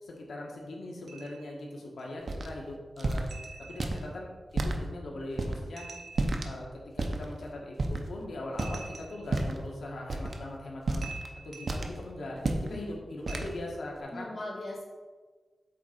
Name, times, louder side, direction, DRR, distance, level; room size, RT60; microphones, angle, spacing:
voice 1, 0.0-3.3 3.6-4.3 4.6-5.8 6.4-6.7 6.9-11.1 11.4-14.3, left 1 dB, 90° left, -1 dB, 1.4 m, -40 dB
sound 1, 1.1-1.5 2.0-2.1 3.3-4.1 5.8-6.5 8.6-9.4 10.3-10.4 11.0-11.9 13.3-13.4, right 4 dB, 75° right, 1.0 m, -46 dB
sound 2, 2.3-2.5 3.0-3.3 3.8-4.0 4.5-4.8 5.4-5.6 6.2-6.5 7.0-7.3 7.8-8.1 8.5-8.9 9.2-9.7 10.1-10.3 10.9-11.3 11.7-12.0 12.4-12.7 13.3-13.5, right 2 dB, 55° right, 0.7 m, -30 dB
voice 2, 12.5-13.0 14.1-14.8, left 1 dB, 45° left, -4 dB, 2.1 m, -40 dB
8.3 x 3.6 x 4.5 m, 1.4 s
wide cardioid pair, 100°, 0 cm